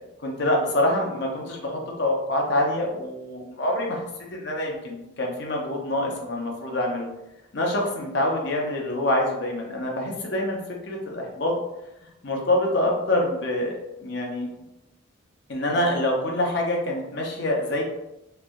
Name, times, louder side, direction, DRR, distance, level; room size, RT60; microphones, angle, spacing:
voice 1, 0.2-4.1 4.3-7.1 7.5-10.6 10.8-11.5 12.2-14.5 15.5-17.8, left 1 dB, 55° left, 0 dB, 0.6 m, -26 dB
3.1 x 2.6 x 2.3 m, 0.90 s
head